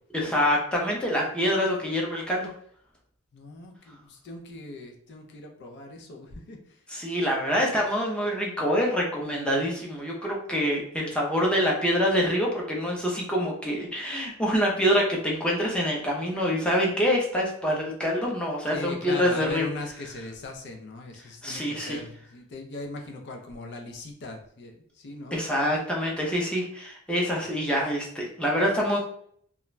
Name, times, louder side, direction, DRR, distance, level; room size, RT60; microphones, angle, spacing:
voice 1, 0.1-2.5 6.9-19.7 21.4-22.0 25.3-29.0, equal, 5° left, -3 dB, 0.5 m, -26 dB
voice 2, 3.3-6.6 18.7-24.7 25.0-25.4, left 2 dB, 55° left, 3 dB, 0.4 m, -39 dB
2.4 x 2.1 x 3.0 m, 0.63 s
head